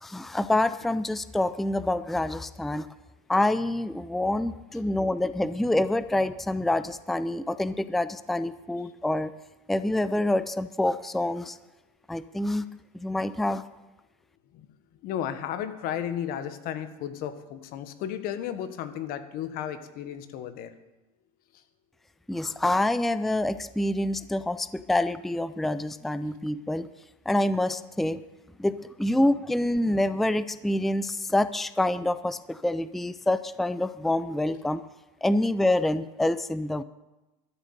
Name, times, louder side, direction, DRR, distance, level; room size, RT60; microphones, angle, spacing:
voice 1, 0.0-2.9 3.3-9.3 9.7-11.6 12.1-12.7 13.0-13.6 22.3-26.9 27.3-28.2 28.6-34.8 35.2-36.8, left 1 dB, ahead, 14 dB, 0.4 m, -26 dB
voice 2, 15.0-20.7, left 10 dB, 55° left, 10 dB, 1.4 m, -34 dB
13.0 x 7.8 x 9.1 m, 1.0 s
supercardioid pair, 105°, 18 cm